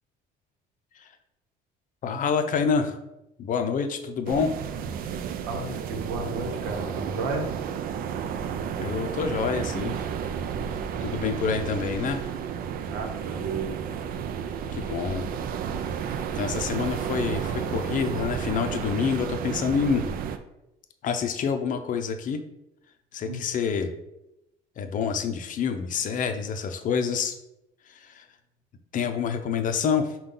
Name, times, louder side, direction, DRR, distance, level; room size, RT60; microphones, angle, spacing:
voice 1, 2.0-3.0 3.4-4.5 8.8-10.0 11.0-12.3 14.7-15.3 16.3-20.1 21.0-22.4 23.1-23.9 24.8-27.3 27.9-28.2 28.9-30.2, left 6 dB, 50° left, 7 dB, 0.5 m, -27 dB
sound 1, 4.3-20.4, right 7 dB, 60° right, 0.4 m, -32 dB
voice 2, 5.5-7.5 12.9-13.8 23.3-23.5, right 3 dB, 90° right, 3 dB, 0.9 m, -32 dB
5.2 x 2.3 x 3.8 m, 0.89 s
cardioid pair, 110°, 17 cm